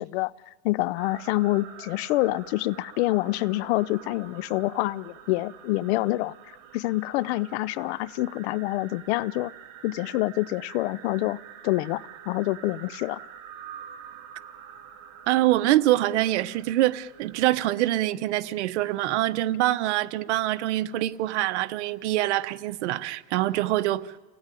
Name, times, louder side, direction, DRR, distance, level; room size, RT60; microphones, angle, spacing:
voice 1, 0.0-6.3 6.7-9.5 9.8-13.2, left 18 dB, 70° left, 0.8 m, -27 dB
sound 1, 1.0-17.7, right 8 dB, 50° right, 2.9 m, -47 dB
voice 2, 15.3-24.1, right 15 dB, 80° right, 1.2 m, -25 dB
29.0 x 18.0 x 9.2 m
supercardioid pair, 140°, 34 cm